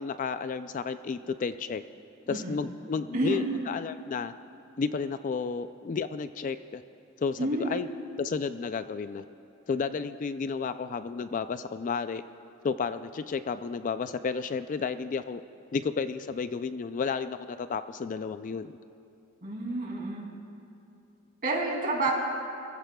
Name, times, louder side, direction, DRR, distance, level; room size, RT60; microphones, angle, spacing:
voice 1, 0.0-1.8 2.3-4.3 4.8-6.8 7.2-7.9 8.2-9.2 9.7-12.2 12.6-15.4 15.7-18.7, left 5 dB, 35° left, 11 dB, 0.3 m, -32 dB
voice 2, 7.4-7.8 19.4-20.3 21.4-22.1, right 2 dB, 40° right, -1 dB, 2.6 m, -29 dB
26.0 x 15.5 x 2.3 m, 2.7 s
head